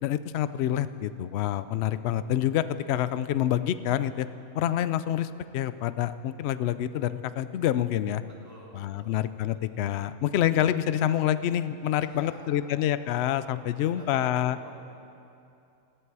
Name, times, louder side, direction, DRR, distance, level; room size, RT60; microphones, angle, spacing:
voice 1, 0.0-4.3 4.5-8.2 8.7-14.6, left 11 dB, 70° left, 13 dB, 0.6 m, -27 dB
voice 2, 8.4-9.2 12.1-12.9 13.8-14.7, equal, 15° left, -6 dB, 3.8 m, -49 dB
19.0 x 14.5 x 4.8 m, 2.6 s
omnidirectional pair, 1.6 m